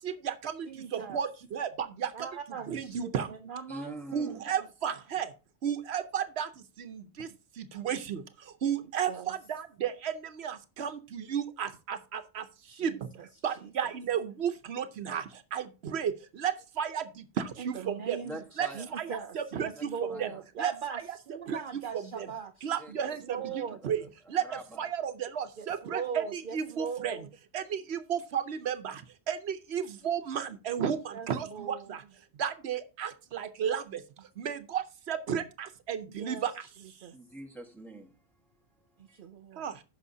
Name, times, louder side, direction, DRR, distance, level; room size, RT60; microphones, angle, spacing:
voice 1, 0.0-3.3 4.1-5.3 5.6-13.1 13.4-18.2 18.6-19.9 20.2-20.3 20.6-21.0 21.5-22.3 22.6-24.0 24.3-27.3 27.5-32.0 32.3-37.0 39.6-39.8, right 8 dB, 80° right, 1.0 m, -34 dB
voice 2, 0.7-1.2 2.1-3.0 3.3-4.5 9.1-9.3 12.7-13.3 13.8-13.9 17.6-21.0 21.3-23.8 25.6-27.3 31.1-32.0 36.2-36.5 37.0-37.2 39.0-39.7, right 6 dB, 60° right, 0.7 m, -40 dB
voice 3, 3.7-4.4 18.2-18.9 19.7-20.4 22.7-24.1 24.4-24.8 37.1-38.2 38.8-39.2, right 1 dB, ahead, 1.2 m, -45 dB
15.5 x 5.8 x 2.7 m
omnidirectional pair, 1.1 m